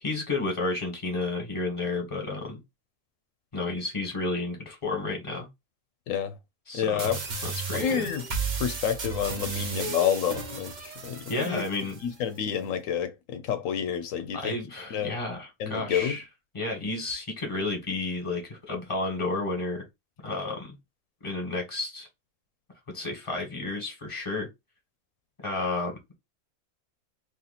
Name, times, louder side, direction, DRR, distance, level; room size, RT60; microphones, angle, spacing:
voice 1, 0.0-2.6 3.5-5.5 6.7-7.1 7.4-8.1 9.5-9.7 11.3-12.0 14.3-16.2 16.5-19.8 20.2-20.8 21.2-22.1 22.9-24.5 25.4-26.0, left 3 dB, 25° left, 1.4 m, -31 dB
voice 2, 6.7-7.2 7.7-8.2 8.6-11.6 12.0-14.6 14.9-15.1 15.6-16.2, left 8 dB, 85° left, 1.0 m, -29 dB
sound 1, 7.0-12.0, right 4 dB, 40° right, 0.9 m, -34 dB
2.9 x 2.8 x 4.1 m
omnidirectional pair, 1.4 m